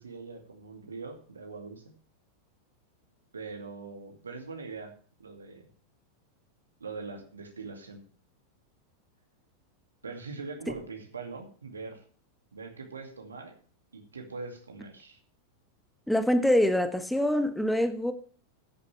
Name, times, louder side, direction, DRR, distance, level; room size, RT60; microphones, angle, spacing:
voice 1, 0.0-1.8 3.3-4.9 5.2-5.7 6.8-8.0 10.0-12.0 12.5-13.6 13.9-15.2, right 4 dB, 75° right, 2.2 m, -42 dB
voice 2, 16.1-18.1, left 1 dB, ahead, 1.2 m, -25 dB
13.5 x 10.0 x 3.3 m
figure-of-eight pair, 90°, 0 cm